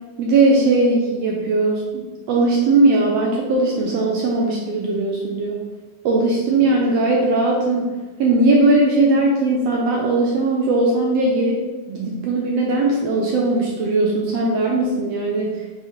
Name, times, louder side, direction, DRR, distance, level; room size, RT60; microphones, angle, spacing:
voice 1, 0.2-5.6 6.0-7.9 8.2-11.6 11.9-15.7, right 2 dB, 70° right, -1 dB, 1.6 m, -19 dB
6.8 x 3.2 x 4.3 m, 1.2 s
omnidirectional pair, 3.4 m